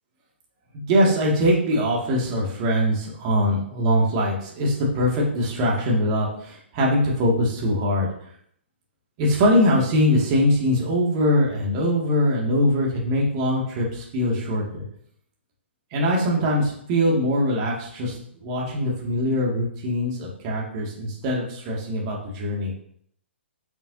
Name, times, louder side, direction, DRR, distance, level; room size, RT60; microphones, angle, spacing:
voice 1, 0.7-8.1 9.2-14.8 15.9-18.2 18.4-22.7, equal, 30° right, -3 dB, 2.3 m, -22 dB
9.2 x 6.2 x 2.8 m, 0.65 s
figure-of-eight pair, 125°, 7 cm